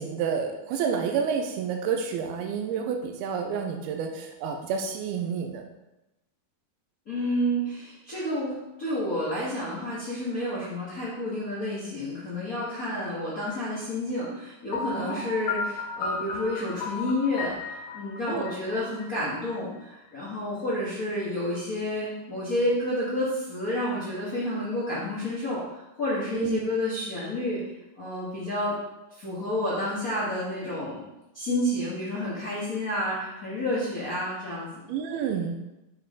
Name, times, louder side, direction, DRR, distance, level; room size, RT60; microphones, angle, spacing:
voice 1, 0.0-5.6 15.0-15.3 18.3-18.5 26.3-26.6 34.9-35.6, right 6 dB, 90° right, 3 dB, 2.6 m, -29 dB
voice 2, 7.1-27.6 28.0-28.7 29.1-31.0 31.3-34.8, left 1 dB, 50° left, -8 dB, 1.0 m, -30 dB
Piano, 14.7-19.6, left 4 dB, 85° left, 2.8 m, -34 dB
7.7 x 5.5 x 3.8 m, 0.96 s
omnidirectional pair, 4.4 m